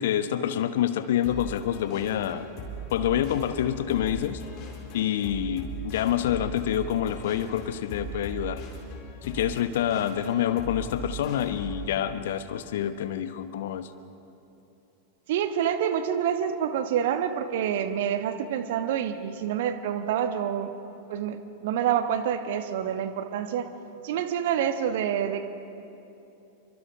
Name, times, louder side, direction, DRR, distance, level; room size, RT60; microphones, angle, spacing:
voice 1, 0.0-2.5 2.9-4.4 4.9-8.6 9.2-13.9, left 10 dB, 55° left, 12 dB, 1.0 m, -27 dB
sound 1, 1.2-11.9, right 2 dB, 40° left, 4.2 m, -39 dB
voice 2, 15.3-20.7 21.1-23.7 24.0-25.5, right 9 dB, 55° right, 9 dB, 1.3 m, -27 dB
28.5 x 24.0 x 5.1 m, 2.8 s
figure-of-eight pair, 90°, 0 cm